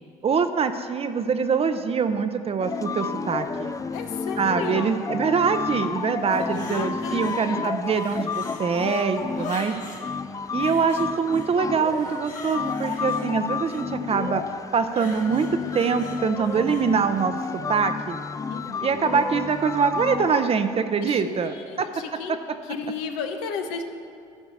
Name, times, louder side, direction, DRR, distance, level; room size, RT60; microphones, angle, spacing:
voice 1, 0.2-3.7 4.4-9.8 10.5-14.4 14.7-17.3 17.7-18.2 18.8-21.9, right 6 dB, 40° right, 9 dB, 0.6 m, -24 dB
sound 1, 2.6-20.5, left 5 dB, 20° left, 0.4 m, -31 dB
voice 2, 3.9-5.1 6.3-7.8 9.4-9.9 18.5-18.8 21.0-22.4 22.6-23.8, left 5 dB, 85° left, 5 dB, 0.8 m, -34 dB
sound 2, 6.3-7.4 7.8-10.0 10.6-11.5 11.8-13.8 14.8-16.8 17.3-17.5, left 4 dB, 55° left, 2.1 m, -40 dB
12.5 x 4.6 x 6.9 m, 2.4 s
hypercardioid pair, 65°, 16 cm